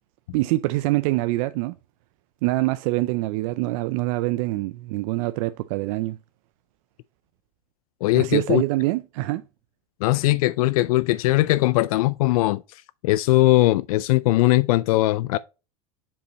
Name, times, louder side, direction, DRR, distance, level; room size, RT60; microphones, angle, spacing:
voice 1, 0.3-1.7 2.4-6.2 8.1-9.4, right 19 dB, 65° right, 0.5 m, -24 dB
voice 2, 8.0-8.6 10.0-12.6 13.0-15.4, left 18 dB, 75° left, 0.4 m, -20 dB
7.0 x 5.2 x 2.8 m
supercardioid pair, 115°, 19 cm